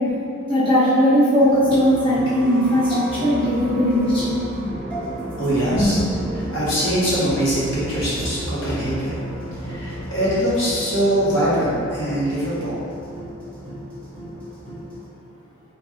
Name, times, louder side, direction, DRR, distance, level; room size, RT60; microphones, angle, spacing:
voice 1, 0.5-4.2 4.5-4.6 5.7-5.9, equal, 25° left, -13 dB, 1.2 m, -18 dB
sound 1, 1.4-15.0, right 1 dB, 5° left, 0.8 m, -32 dB
voice 2, 5.4-6.0 6.3-9.1 9.6-12.8, equal, 65° left, -10 dB, 1.2 m, -22 dB
4.7 x 2.5 x 2.9 m, 2.5 s
head